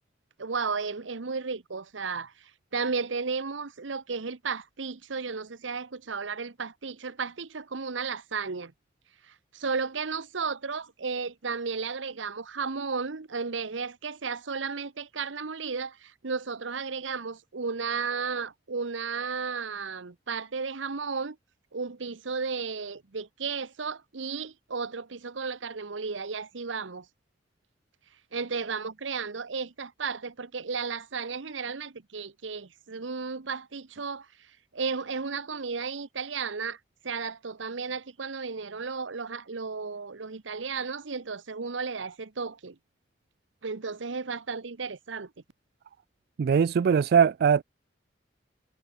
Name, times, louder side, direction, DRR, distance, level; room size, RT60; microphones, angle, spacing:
voice 1, 0.4-8.7 9.3-21.4 21.7-27.1 28.3-34.3 34.7-36.8 37.0-42.8 43.6-45.3, right 5 dB, 90° right, 1.0 m, -34 dB
voice 2, 46.4-47.6, right 7 dB, 60° right, 0.3 m, -21 dB
head